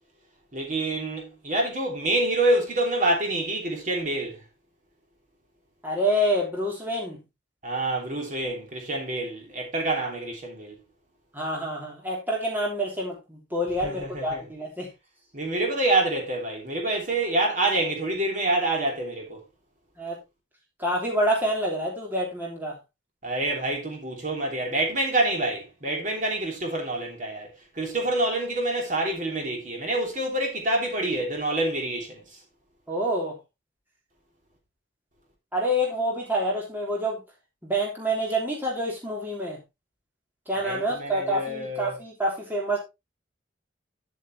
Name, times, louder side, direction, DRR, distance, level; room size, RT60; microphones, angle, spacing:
voice 1, 0.5-4.4 7.6-10.7 13.8-14.4 15.3-19.4 23.2-32.4 40.6-42.0, right 2 dB, 40° right, 3.0 m, -27 dB
voice 2, 5.8-7.2 11.3-14.9 20.0-20.2 20.8-22.8 32.9-33.3 35.5-37.2 37.6-39.6 40.5-42.8, equal, 10° right, 3.2 m, -27 dB
10.5 x 7.8 x 3.1 m
head